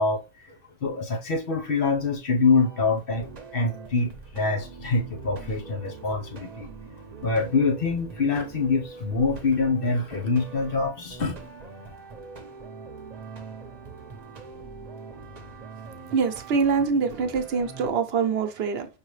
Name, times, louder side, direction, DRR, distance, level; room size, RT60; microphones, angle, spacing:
voice 1, 0.0-6.7 7.2-11.4, left 4 dB, 65° left, 1.1 m, -25 dB
sound 1, 2.4-17.9, right 4 dB, 45° right, 0.8 m, -43 dB
voice 2, 16.1-18.9, right 5 dB, 75° right, 0.9 m, -24 dB
5.3 x 2.8 x 3.1 m
omnidirectional pair, 1.1 m